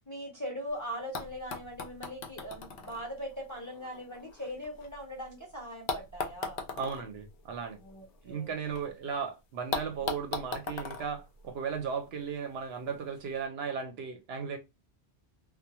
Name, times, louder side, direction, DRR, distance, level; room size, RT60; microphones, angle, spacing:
voice 1, 0.0-6.6 7.8-8.5, equal, 20° left, 0.7 m, -40 dB
sound 1, 0.7-0.8 1.1-5.2 5.9-8.8 9.1-9.2 9.7-12.1 13.1-13.2, left 4 dB, 65° left, 0.7 m, -40 dB
voice 2, 6.8-7.8 8.2-14.6, right 6 dB, 70° right, 0.8 m, -36 dB
2.2 x 2.2 x 2.8 m
omnidirectional pair, 1.1 m